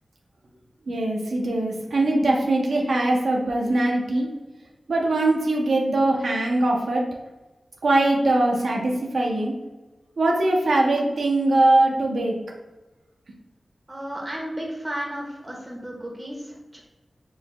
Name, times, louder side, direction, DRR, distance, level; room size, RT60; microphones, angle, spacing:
voice 1, 0.9-4.3 4.9-7.0 7.8-9.5 10.2-12.3, right 2 dB, 85° right, -1 dB, 0.7 m, -21 dB
voice 2, 13.9-16.8, equal, 20° right, -2 dB, 1.4 m, -33 dB
5.0 x 3.9 x 2.2 m, 1.1 s
wide cardioid pair, 75°, 0 cm